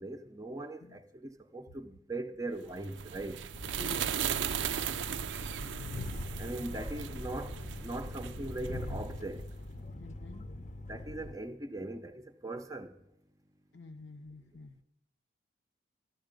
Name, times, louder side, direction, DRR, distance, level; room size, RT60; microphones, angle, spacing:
voice 1, 0.0-3.4 6.4-9.5 10.9-13.0, right 2 dB, 15° right, 0.6 m, -40 dB
sound 1, 2.7-9.3, right 9 dB, 75° right, 0.4 m, -37 dB
Train, 3.5-11.4, left 1 dB, 40° left, 0.7 m, -42 dB
voice 2, 3.8-4.8 9.9-10.5 13.7-14.8, left 3 dB, 80° left, 0.9 m, -49 dB
13.5 x 12.0 x 5.2 m
head